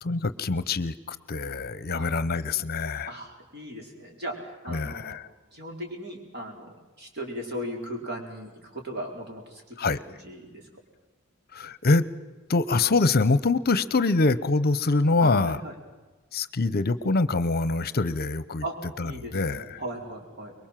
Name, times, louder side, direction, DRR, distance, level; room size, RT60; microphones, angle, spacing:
voice 1, 0.0-3.1 4.7-5.3 9.8-10.0 11.5-12.0 12.5-15.6 16.3-18.6 19.0-19.8, left 3 dB, 50° left, 16 dB, 0.8 m, -25 dB
voice 2, 3.0-5.2 5.5-9.6 10.0-10.6 15.2-15.8 18.6-18.7 19.0-20.5, equal, 55° right, 1 dB, 5.0 m, -37 dB
24.5 x 22.0 x 7.6 m, 1.2 s
head